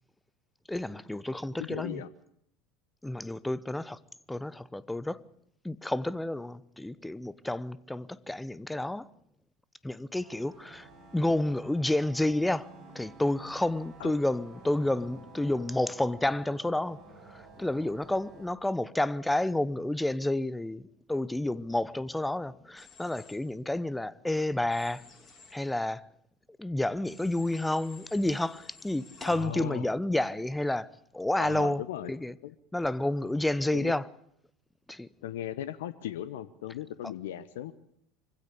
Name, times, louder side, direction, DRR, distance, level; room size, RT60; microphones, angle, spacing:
voice 1, 0.7-2.0 3.0-4.0 4.3-5.2 5.6-9.1 9.8-10.9 11.1-12.7 12.9-17.0 17.3-25.0 25.5-26.1 26.6-31.8 32.1-32.3 32.7-34.1 34.9-35.1 37.0-37.1, left 1 dB, 5° left, 0.9 m, -30 dB
voice 2, 1.6-2.1 14.0-14.1 29.3-29.9 31.4-32.1 32.4-32.5 33.7-33.9 35.2-37.7, left 12 dB, 70° left, 0.9 m, -37 dB
sound 1, 10.2-18.5, right 3 dB, 50° right, 7.4 m, -52 dB
Human voice / Train, 22.8-23.4 24.7-25.5 27.0-29.4, left 4 dB, 25° left, 7.1 m, -52 dB
24.5 x 16.0 x 8.4 m
figure-of-eight pair, 70°, 0 cm